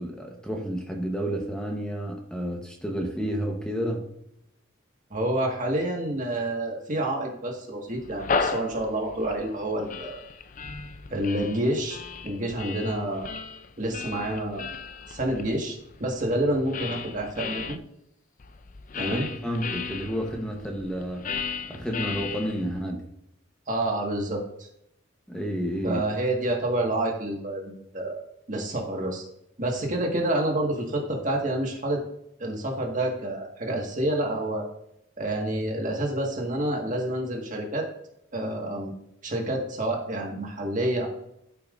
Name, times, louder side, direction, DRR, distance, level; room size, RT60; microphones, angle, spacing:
voice 1, 0.0-4.1 19.0-21.3 21.7-23.1 25.3-26.0, equal, 5° left, 1 dB, 1.0 m, -31 dB
voice 2, 5.1-10.2 11.1-12.0 12.2-13.3 13.8-14.7 15.1-17.8 19.0-19.3 23.7-24.7 25.8-28.2 28.5-29.2 29.6-32.0 32.4-34.7 35.2-37.9 38.3-38.9 39.2-41.1, right 1 dB, 40° right, 0 dB, 1.7 m, -28 dB
sound 1, 8.0-17.8 18.4-22.8, left 5 dB, 40° left, 0.4 m, -35 dB
13.0 x 5.7 x 2.6 m, 0.76 s
head